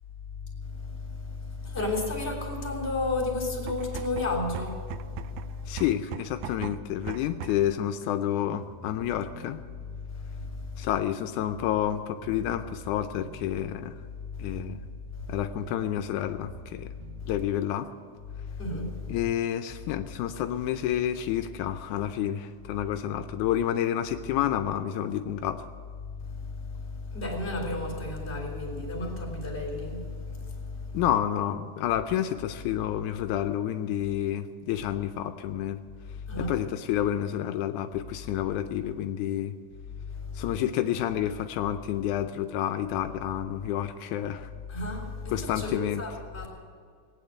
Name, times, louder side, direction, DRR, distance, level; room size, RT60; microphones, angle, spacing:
voice 1, 0.7-5.8 10.2-10.9 14.4-14.6 15.2-15.4 17.2-17.3 18.5-19.2 26.3-31.0 36.3-36.6 40.2-40.5 44.7-46.5, left 2 dB, 20° left, 3.4 m, -33 dB
sound 1, 3.5-7.8, right 12 dB, 80° right, 1.8 m, -40 dB
voice 2, 5.7-9.6 10.8-14.0 14.4-14.8 15.3-16.9 17.3-17.9 19.1-25.7 30.9-35.8 36.4-39.6 40.3-44.5 45.3-46.0, left 11 dB, 85° left, 2.1 m, -29 dB
sound 2, 8.4-18.1, right 3 dB, 60° right, 2.6 m, -50 dB
19.0 x 9.2 x 7.9 m
omnidirectional pair, 3.5 m